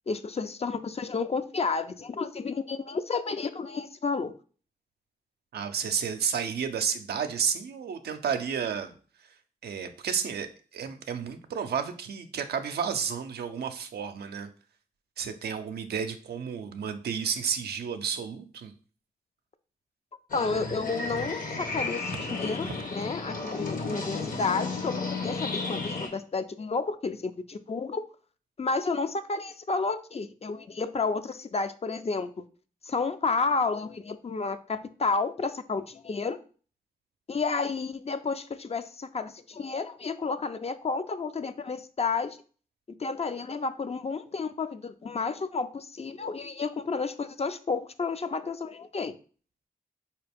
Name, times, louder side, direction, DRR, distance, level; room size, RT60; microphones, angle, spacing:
voice 1, 0.1-4.3 20.3-28.0 28.6-32.5 32.8-36.4 37.3-42.4 43.0-49.1, left 4 dB, 40° left, 10 dB, 0.4 m, -31 dB
voice 2, 5.5-8.9 9.2-9.3 9.6-14.5 15.2-18.7 22.6-22.7, right 7 dB, 85° right, 7 dB, 0.4 m, -31 dB
sound 1, 20.3-26.1, left 3 dB, 60° left, 1.0 m, -33 dB
4.1 x 2.8 x 3.4 m, 0.40 s
cardioid pair, 45°, 16 cm